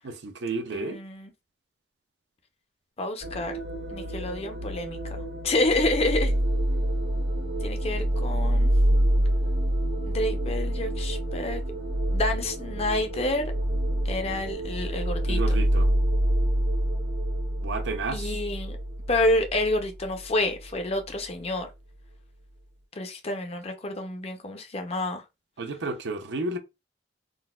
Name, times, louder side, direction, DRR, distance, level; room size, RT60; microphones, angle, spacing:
voice 1, 0.0-1.0 15.3-15.9 17.6-18.2 25.6-26.6, right 3 dB, 70° right, 0.5 m, -31 dB
voice 2, 0.7-1.3 3.0-3.5 3.9-5.2 5.4-6.3 7.6-8.7 10.1-11.6 12.1-13.4 14.0-15.4 18.1-18.8 19.1-21.7 23.0-25.2, left 2 dB, 35° left, 0.5 m, -28 dB
sound 1, 3.2-20.7, right 1 dB, 85° right, 1.4 m, -27 dB
3.8 x 2.1 x 2.2 m
head